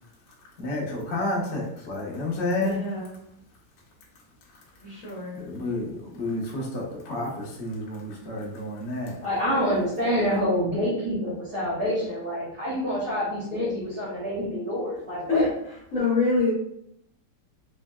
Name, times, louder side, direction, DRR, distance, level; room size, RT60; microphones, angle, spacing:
voice 1, 0.6-2.8 5.4-9.1, left 2 dB, 85° left, -3 dB, 0.6 m, -30 dB
voice 2, 2.6-3.2 4.8-5.4 15.3-15.5 15.9-16.5, left 3 dB, 50° left, -8 dB, 1.1 m, -25 dB
voice 3, 9.2-15.5, equal, 60° right, -8 dB, 1.2 m, -27 dB
3.8 x 2.1 x 2.2 m, 0.72 s
omnidirectional pair, 2.3 m